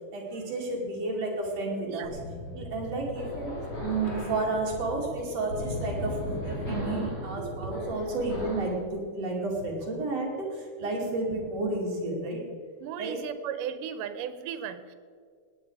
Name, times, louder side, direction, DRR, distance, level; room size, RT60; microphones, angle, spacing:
voice 1, 0.1-2.2 2.5-3.5 3.8-12.4 13.0-13.2, right 2 dB, 50° right, -2 dB, 3.5 m, -31 dB
sound 1, 2.0-8.8, left 1 dB, 45° left, 4.6 m, -36 dB
voice 2, 12.8-15.0, right 8 dB, 90° right, 12 dB, 2.4 m, -36 dB
18.5 x 9.0 x 4.8 m, 2.1 s
omnidirectional pair, 3.7 m